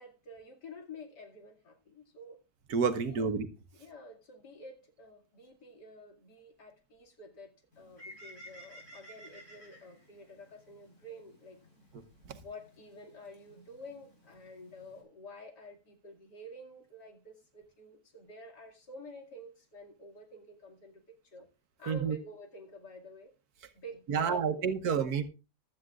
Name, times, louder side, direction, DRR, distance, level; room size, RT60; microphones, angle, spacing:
voice 1, 0.0-2.4 3.0-3.3 3.7-11.6 12.3-21.5 21.8-23.3 23.7-25.2, left 1 dB, 75° left, 2 dB, 3.0 m, -50 dB
voice 2, 2.7-3.5 12.3-12.4 21.9-22.1 24.1-25.2, right 6 dB, 70° right, 9 dB, 1.5 m, -29 dB
Bird, 7.7-15.0, equal, 45° left, 5.0 m, -55 dB
15.5 x 12.0 x 2.4 m, 0.31 s
omnidirectional pair, 1.8 m